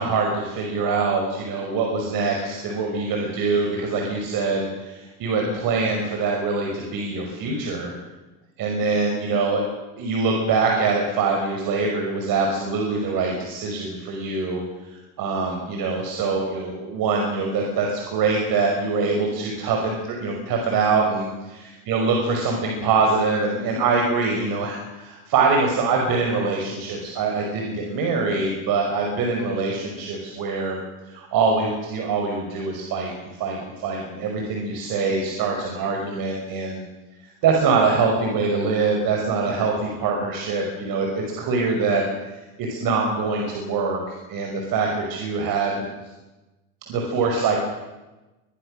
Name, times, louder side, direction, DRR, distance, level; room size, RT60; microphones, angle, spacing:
voice 1, 0.0-7.9 8.6-9.6 10.0-14.6 14.9-30.8 31.1-33.1 33.4-36.8 37.4-42.0 42.6-45.8 46.9-47.6, right 4 dB, 50° right, 1 dB, 5.6 m, -24 dB
23.5 x 22.5 x 6.6 m, 1.1 s
supercardioid pair, 110°, 46 cm